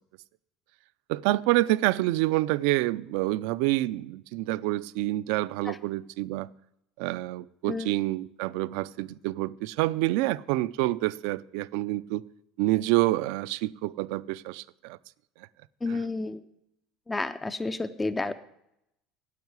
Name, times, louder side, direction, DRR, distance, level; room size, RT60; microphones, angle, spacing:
voice 1, 1.1-6.5 7.0-12.2 12.6-15.0 15.9-16.0, right 18 dB, 65° right, 0.4 m, -27 dB
voice 2, 15.8-16.4 17.1-18.3, left 3 dB, 10° left, 0.4 m, -30 dB
9.3 x 8.2 x 9.5 m
cardioid pair, 175°, 0 cm